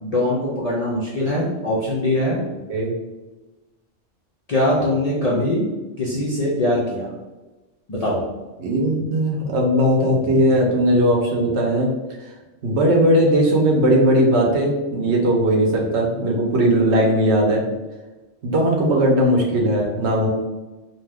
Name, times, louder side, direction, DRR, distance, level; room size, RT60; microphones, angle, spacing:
voice 1, 0.0-2.4 4.5-5.6 6.0-7.1 7.9-8.2, left 1 dB, 65° left, -5 dB, 0.3 m, -22 dB
voice 2, 8.6-11.9 12.6-17.6 18.4-20.3, right 1 dB, 65° right, -1 dB, 0.9 m, -18 dB
2.6 x 2.3 x 3.3 m, 1.1 s
omnidirectional pair, 1.3 m